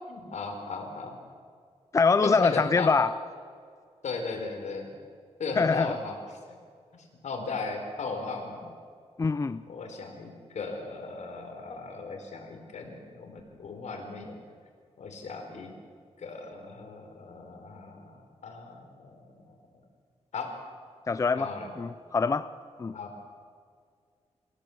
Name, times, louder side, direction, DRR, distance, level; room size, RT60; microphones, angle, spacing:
voice 1, 0.1-1.2 2.2-2.9 4.0-4.9 5.4-6.2 6.9-8.7 9.7-14.4 15.0-15.7 16.2-19.5 20.3-20.5 21.4-21.7 22.9-23.1, left 4 dB, 85° left, 4 dB, 4.3 m, -37 dB
voice 2, 1.9-3.1 5.6-6.0 9.2-9.6 21.1-21.5 21.8-22.5 22.8-22.9, left 4 dB, 25° left, 13 dB, 0.5 m, -24 dB
27.0 x 16.5 x 7.8 m, 2.1 s
wide cardioid pair, 150°, 12 cm